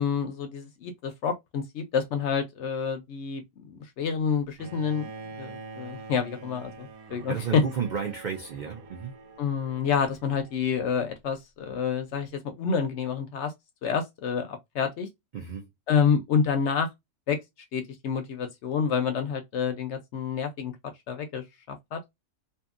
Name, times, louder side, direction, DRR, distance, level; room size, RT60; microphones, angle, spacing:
voice 1, 0.0-5.1 5.4-7.6 9.4-13.5 13.8-15.1 15.9-16.9 17.3-17.4 17.7-20.7 21.1-22.0, left 6 dB, 65° left, 0.7 m, -28 dB
Bowed string instrument, 4.6-10.7, right 4 dB, 90° right, 1.2 m, -45 dB
voice 2, 7.3-9.1 15.3-15.7, right 7 dB, 65° right, 0.4 m, -32 dB
2.6 x 2.6 x 2.4 m
omnidirectional pair, 1.5 m